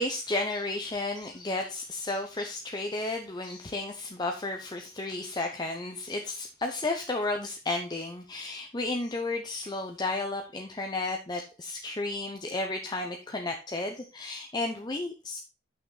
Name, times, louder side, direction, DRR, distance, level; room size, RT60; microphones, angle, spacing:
voice 1, 0.0-15.4, left 2 dB, 20° left, 3 dB, 0.7 m, -33 dB
9.1 x 5.8 x 3.9 m, 0.32 s
head